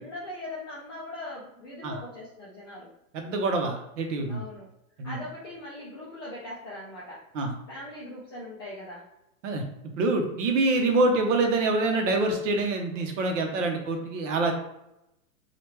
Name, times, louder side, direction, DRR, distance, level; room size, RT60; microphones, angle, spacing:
voice 1, 0.0-2.9 4.3-4.7 5.0-7.2 7.7-9.1, left 1 dB, 20° left, -7 dB, 0.3 m, -40 dB
voice 2, 3.1-4.4 5.0-5.2 7.3-7.5 9.4-9.6 10.0-14.5, right 2 dB, 60° right, 3 dB, 0.9 m, -25 dB
3.1 x 2.4 x 3.1 m, 0.85 s
hypercardioid pair, 125°, 43 cm